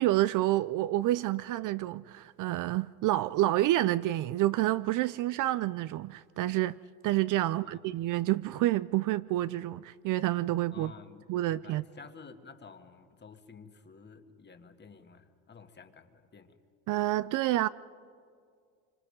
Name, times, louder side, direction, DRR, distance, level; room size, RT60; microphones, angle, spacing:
voice 1, 0.0-6.8 7.0-10.9 11.3-11.8 16.9-17.7, right 15 dB, 50° right, 0.5 m, -28 dB
voice 2, 7.5-8.0 10.7-16.6, left 5 dB, 25° left, 1.7 m, -52 dB
25.5 x 25.5 x 5.3 m
supercardioid pair, 95°, 43 cm